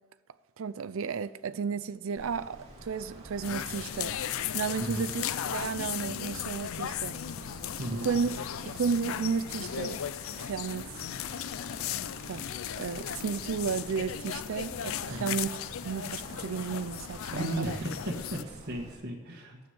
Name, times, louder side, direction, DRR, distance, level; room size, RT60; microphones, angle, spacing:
voice 1, 0.6-7.2 8.0-8.3 8.7-10.0 10.4-10.9 12.3-12.5 12.8-15.6 15.8-17.7, right 5 dB, 70° right, 0.4 m, -33 dB
Wind, 2.2-18.9, right 1 dB, 30° right, 2.4 m, -48 dB
sound 1, 3.4-18.4, left 10 dB, 70° left, 0.4 m, -36 dB
voice 2, 7.8-8.1 15.1-15.4 17.3-19.6, right 1 dB, 50° right, 1.5 m, -35 dB
12.0 x 7.0 x 7.9 m
head